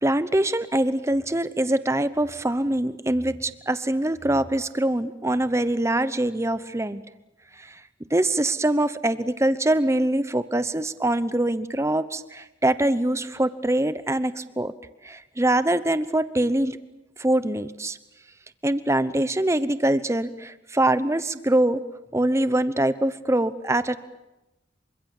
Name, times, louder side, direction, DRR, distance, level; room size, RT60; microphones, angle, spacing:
voice 1, 0.0-7.0 7.6-7.8 8.1-14.7 15.0-16.8 17.2-18.0 18.6-21.8 22.1-24.0, right 1 dB, 15° right, 13 dB, 0.9 m, -23 dB
28.0 x 25.0 x 7.2 m, 0.98 s
head